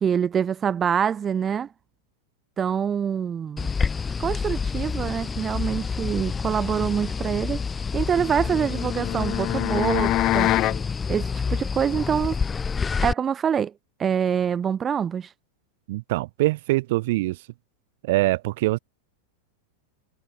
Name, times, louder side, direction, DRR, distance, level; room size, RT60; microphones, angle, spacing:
voice 1, 0.0-1.7 2.6-3.7 4.2-7.6 7.9-10.6 11.1-12.4 13.0-13.7 14.0-15.3, right 8 dB, 20° right, 1.4 m, -25 dB
sound 1, 3.6-13.1, left 5 dB, 15° left, 6.8 m, -28 dB
sound 2, 8.2-10.8, left 15 dB, 35° left, 1.2 m, -25 dB
voice 2, 15.9-17.4 18.0-18.8, right 19 dB, 50° right, 1.5 m, -23 dB
figure-of-eight pair, 90°, 0 cm